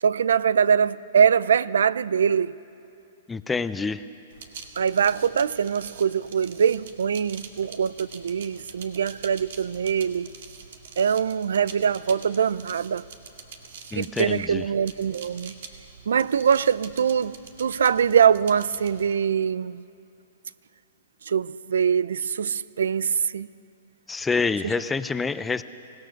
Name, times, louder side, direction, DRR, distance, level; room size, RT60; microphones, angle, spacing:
voice 1, 0.0-2.6 4.8-10.3 11.0-13.1 13.9-15.6 16.1-19.8 21.3-23.5, right 7 dB, 85° right, 0.5 m, -23 dB
voice 2, 3.3-4.0 13.9-14.6 24.1-25.6, left 4 dB, 10° left, 0.4 m, -27 dB
sound 1, 4.3-19.1, right 5 dB, 65° right, 2.0 m, -45 dB
25.0 x 17.5 x 6.5 m
hypercardioid pair, 140°, 0 cm